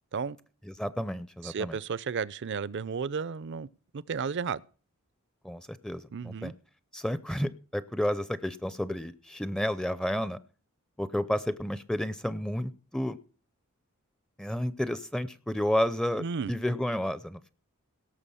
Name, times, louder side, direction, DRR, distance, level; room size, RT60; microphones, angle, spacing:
voice 1, 0.6-1.8 5.4-6.5 6.9-10.4 11.0-13.2 14.4-17.5, equal, 5° left, 0.5 m, -31 dB
voice 2, 1.4-3.7 3.9-4.6 6.1-6.5 16.2-16.5, right 5 dB, 55° right, 0.5 m, -33 dB
17.5 x 6.7 x 5.7 m
head